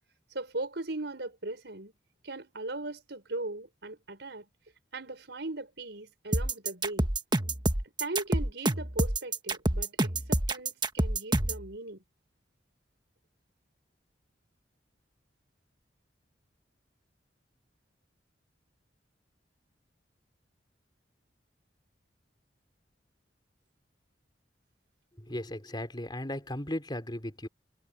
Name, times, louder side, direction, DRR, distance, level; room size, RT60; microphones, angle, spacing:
voice 1, 0.3-1.9 2.2-4.5 4.9-7.1 8.0-12.0, right 2 dB, 70° right, 5.7 m, -38 dB
sound 1, 6.3-11.6, right 2 dB, 25° right, 1.4 m, -27 dB
voice 2, 25.2-27.5, left 1 dB, 25° left, 3.8 m, -36 dB
head